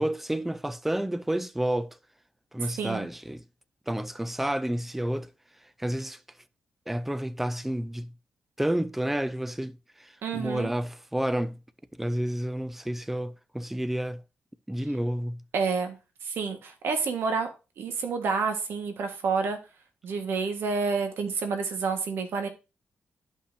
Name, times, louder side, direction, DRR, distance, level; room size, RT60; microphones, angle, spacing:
voice 1, 0.0-2.0 2.5-3.4 3.9-5.3 5.8-6.2 6.9-8.1 8.6-11.6 11.9-14.2 14.7-15.4, right 1 dB, 5° right, 0.4 m, -30 dB
voice 2, 10.2-10.7 15.5-16.0 16.2-17.5 17.8-19.6 20.0-22.5, right 5 dB, 75° right, 1.6 m, -29 dB
11.5 x 5.7 x 2.8 m
cardioid pair, 95°, 4 cm